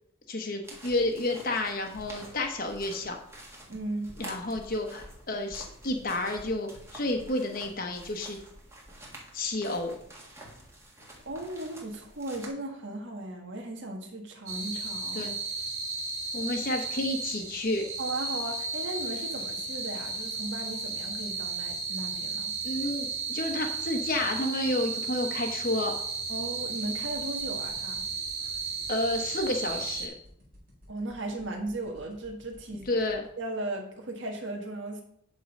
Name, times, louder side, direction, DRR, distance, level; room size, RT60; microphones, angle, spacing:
voice 1, 0.3-3.2 4.2-8.4 9.3-9.9 15.0-15.4 16.3-17.8 22.6-25.9 28.9-30.1 32.9-33.2, left 2 dB, 45° left, 3 dB, 1.1 m, -30 dB
sound 1, 0.6-12.5, right 1 dB, 15° right, 1.7 m, -49 dB
voice 2, 3.7-4.1 11.2-15.3 18.0-22.5 26.3-28.1 30.9-32.9 33.4-35.0, right 2 dB, 60° right, 2 dB, 1.6 m, -36 dB
sound 2, 14.5-30.1, right 4 dB, 90° right, 2.0 m, -34 dB
sound 3, 27.1-33.3, left 1 dB, 45° right, 4.2 m, -56 dB
11.5 x 3.9 x 5.3 m, 0.68 s
head